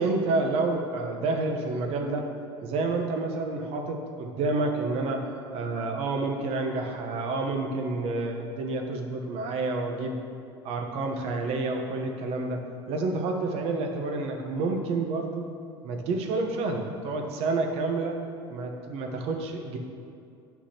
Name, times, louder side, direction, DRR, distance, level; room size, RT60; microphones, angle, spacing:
voice 1, 0.0-2.3 2.6-10.2 10.6-12.6 12.9-15.4 15.8-18.2 18.5-19.8, right 3 dB, 60° right, 3 dB, 1.0 m, -29 dB
9.6 x 5.8 x 2.9 m, 2.4 s
hypercardioid pair, 85°, 12 cm